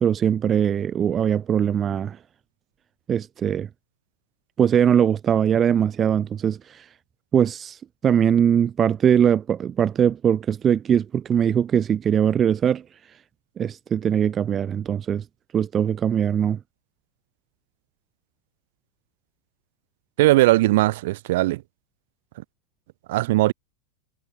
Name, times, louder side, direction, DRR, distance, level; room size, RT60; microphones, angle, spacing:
voice 1, 0.0-2.2 3.1-3.7 4.6-6.9 7.3-12.8 13.6-15.2 15.5-16.6, right 8 dB, 25° right, 0.4 m, -21 dB
voice 2, 20.2-21.6 23.1-23.5, right 18 dB, 50° right, 1.1 m, -19 dB
figure-of-eight pair, 90°, 0 cm